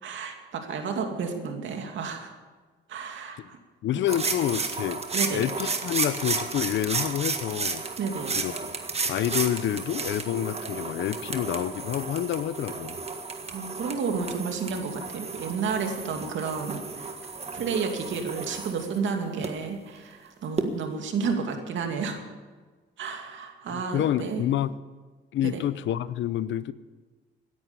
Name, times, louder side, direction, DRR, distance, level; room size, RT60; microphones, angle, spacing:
voice 1, 0.0-2.3 2.9-3.6 5.1-5.4 8.0-8.4 13.4-17.1 17.5-22.2 23.0-24.4 25.4-25.6, right 5 dB, 70° right, 4 dB, 2.6 m, -31 dB
voice 2, 3.8-5.0 5.3-7.8 8.3-8.6 9.1-13.0 23.7-24.7 25.3-26.7, left 11 dB, 70° left, 16 dB, 0.7 m, -28 dB
sound 1, 4.1-19.5 20.6-20.7, right 4 dB, 30° right, 1.7 m, -33 dB
17.0 x 10.5 x 7.0 m, 1.4 s
cardioid pair, 90°, 20 cm